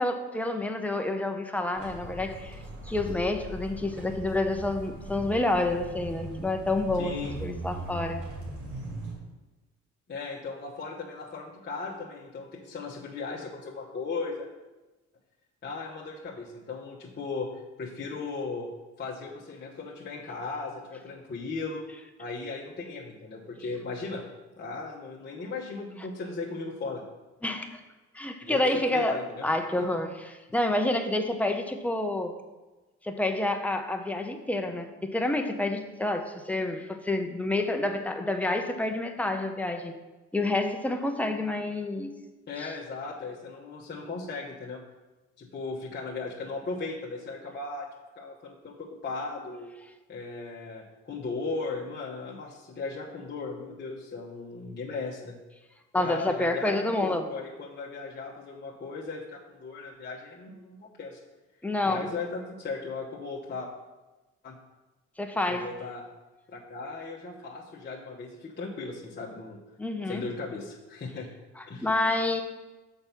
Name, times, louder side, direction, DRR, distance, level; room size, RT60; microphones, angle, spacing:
voice 1, 0.0-2.6 2.9-8.2 27.4-27.8 28.1-30.1 30.5-32.4 33.0-40.0 40.3-42.2 42.6-42.7 55.9-57.3 61.6-62.1 65.2-65.7 69.8-70.3 71.6-72.4, left 2 dB, 5° left, 5 dB, 0.7 m, -28 dB
sound 1, 1.7-9.1, right 1 dB, 75° right, 2.2 m, -39 dB
voice 2, 7.0-7.4 10.1-14.5 15.6-18.7 19.0-21.9 22.2-24.3 24.5-27.0 28.4-29.5 29.8-29.9 42.5-44.8 45.4-47.9 48.2-49.7 50.1-55.4 55.9-61.2 61.8-63.7 64.4-64.6 65.5-66.0 66.5-69.6 70.0-71.3 71.7-71.9, left 3 dB, 35° left, -5 dB, 1.1 m, -37 dB
6.6 x 4.6 x 5.7 m, 1.1 s
cardioid pair, 90°, 30 cm